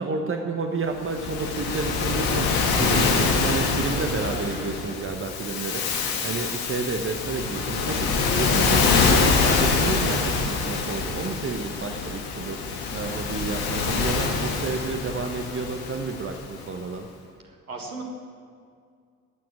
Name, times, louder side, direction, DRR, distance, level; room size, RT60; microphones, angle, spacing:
voice 1, 0.0-8.1 8.3-12.6 12.9-17.1, right 4 dB, 30° right, 4 dB, 1.2 m, -30 dB
Waves surf, 1.1-16.6, left 4 dB, 55° left, 1.9 m, -25 dB
voice 2, 17.4-18.0, right 3 dB, 85° right, 1 dB, 1.8 m, -39 dB
14.0 x 9.2 x 8.7 m, 2.2 s
figure-of-eight pair, 50°, 43 cm